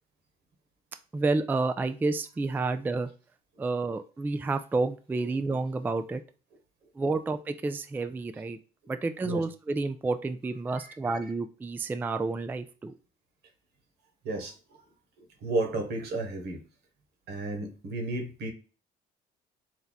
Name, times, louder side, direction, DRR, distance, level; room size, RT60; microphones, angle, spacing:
voice 1, 1.1-3.1 3.6-6.2 7.0-8.6 8.9-12.9, right 3 dB, 10° right, 0.3 m, -30 dB
voice 2, 15.4-16.6 17.3-18.5, right 2 dB, 75° right, 1.4 m, -32 dB
4.5 x 2.7 x 4.0 m
cardioid pair, 110°, 17 cm